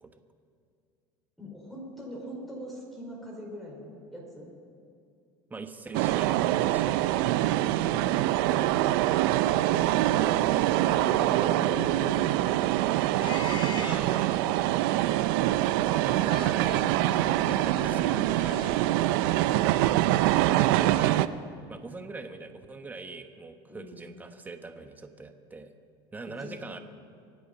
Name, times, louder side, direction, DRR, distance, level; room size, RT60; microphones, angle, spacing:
voice 1, 1.4-4.5 7.8-8.1 8.4-8.9 9.6-12.6 13.6-13.7 17.5-17.7 17.9-20.0 23.7-24.0 26.4-26.5, left 1 dB, ahead, -3 dB, 4.6 m, -42 dB
voice 2, 5.5-7.0 7.2-7.4 7.7-8.0 13.7-14.8 15.8-18.1 20.1-21.3 21.7-25.7 26.1-26.8, right 3 dB, 15° right, 8 dB, 1.1 m, -42 dB
sound 1, 5.9-21.3, right 15 dB, 75° right, 0.5 m, -24 dB
sound 2, 12.0-12.5 13.2-14.6 16.2-18.7, left 8 dB, 40° left, 0.8 m, -43 dB
25.0 x 8.4 x 5.4 m, 2.4 s
supercardioid pair, 115°, 12 cm